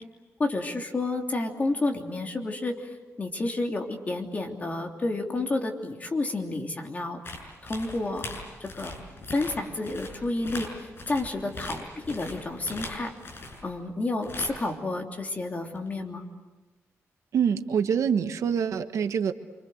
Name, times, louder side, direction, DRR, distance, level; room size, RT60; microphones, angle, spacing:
voice 1, 0.4-7.2 7.6-8.3 8.6-8.9 9.3-13.1 13.6-16.3, left 2 dB, 30° left, 2 dB, 3.2 m, -30 dB
sound 1, 7.2-13.7 14.2-14.7 15.8-15.9, left 2 dB, 45° left, 6.6 m, -40 dB
voice 2, 17.3-19.3, right 7 dB, 80° right, 8 dB, 1.3 m, -25 dB
28.0 x 25.5 x 8.0 m, 1.2 s
wide cardioid pair, 145°, 5 cm